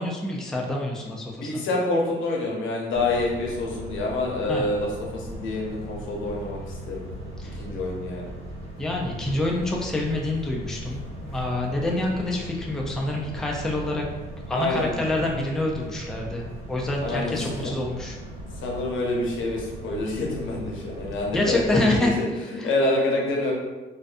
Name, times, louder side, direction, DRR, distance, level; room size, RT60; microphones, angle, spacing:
voice 1, 0.0-1.6 4.5-4.7 7.4-7.6 8.8-14.0 14.5-18.2 21.3-22.7, left 1 dB, ahead, -1 dB, 0.4 m, -27 dB
voice 2, 1.4-7.0 7.6-8.3 14.6-15.0 17.0-17.7 18.6-22.3 22.6-23.5, left 2 dB, 80° left, -2 dB, 0.7 m, -27 dB
sound 1, 2.9-22.1, right 1 dB, 80° right, 1.1 m, -38 dB
2.5 x 2.2 x 2.4 m, 1.2 s
cardioid pair, 90°, 20 cm